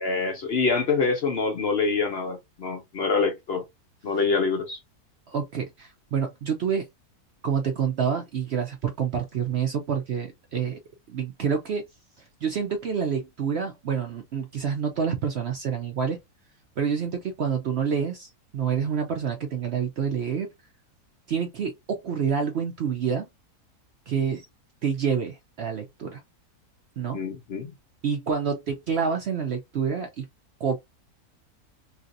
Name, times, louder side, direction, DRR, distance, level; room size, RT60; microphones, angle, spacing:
voice 1, 0.0-3.6 4.0-4.8 27.1-27.7, left 4 dB, 55° left, 0.7 m, -25 dB
voice 2, 5.3-6.9 7.4-10.8 11.1-11.9 12.2-16.2 16.8-20.5 21.3-23.3 24.1-24.5 24.8-26.2 27.0-27.2 28.0-30.3 30.6-30.8, right 7 dB, 60° right, 0.7 m, -28 dB
3.2 x 2.8 x 2.5 m
omnidirectional pair, 1.6 m